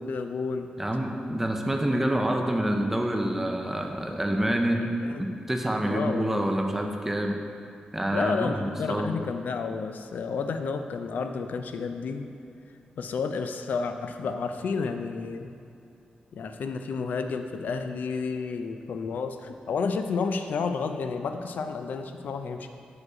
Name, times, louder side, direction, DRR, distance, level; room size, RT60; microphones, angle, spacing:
voice 1, 0.0-0.7 4.8-5.3 5.8-6.4 8.1-12.3 13.0-15.5 16.3-22.7, left 5 dB, 75° left, 7 dB, 0.4 m, -31 dB
voice 2, 0.8-4.9 5.2-7.4 7.9-9.1, right 1 dB, 10° right, 3 dB, 0.4 m, -27 dB
6.3 x 4.9 x 4.8 m, 2.4 s
wide cardioid pair, 175°, 3 cm